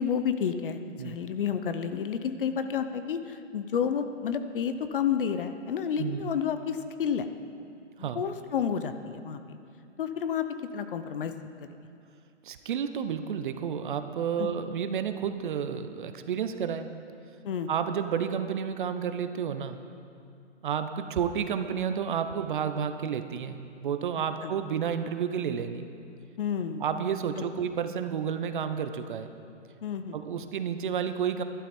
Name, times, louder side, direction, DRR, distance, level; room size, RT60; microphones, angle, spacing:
voice 1, 0.0-7.3 8.0-9.6 10.0-10.5 10.7-11.3 11.6-11.7 14.4-14.5 17.4-17.7 24.4-24.5 26.4-26.8 29.8-30.2, left 7 dB, 45° left, 9 dB, 0.7 m, -30 dB
voice 2, 12.4-16.9 17.7-19.8 20.6-25.8 26.8-29.3 30.1-31.4, right 7 dB, 45° right, 9 dB, 0.7 m, -31 dB
12.0 x 12.0 x 4.3 m, 2.5 s
hypercardioid pair, 140°, 36 cm